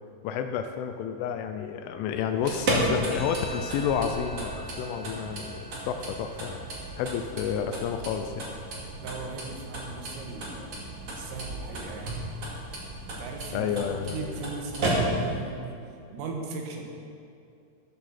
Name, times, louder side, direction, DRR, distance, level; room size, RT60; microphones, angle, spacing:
voice 1, 0.2-6.6 7.0-8.5 13.5-14.4, left 8 dB, 80° left, 7 dB, 3.0 m, -30 dB
sound 1, 2.3-15.4, right 1 dB, 40° right, 2.3 m, -33 dB
sound 2, 3.1-16.1, right 2 dB, 20° left, 2.9 m, -48 dB
voice 2, 9.0-12.2 13.0-15.7 16.1-16.8, right 4 dB, 80° right, 1 dB, 4.2 m, -38 dB
14.5 x 13.5 x 4.3 m, 2.5 s
omnidirectional pair, 5.9 m